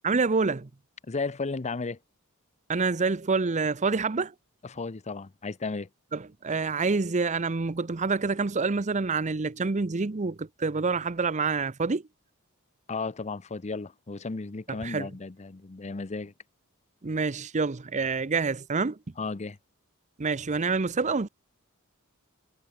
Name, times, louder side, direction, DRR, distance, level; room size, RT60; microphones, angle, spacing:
voice 1, 0.0-0.7 2.7-4.3 6.1-12.0 14.7-15.1 17.0-19.0 20.2-21.3, right 4 dB, 35° right, 0.7 m, -27 dB
voice 2, 1.1-2.0 4.6-5.9 12.9-16.3 19.2-19.6, left 4 dB, 30° left, 0.6 m, -34 dB
head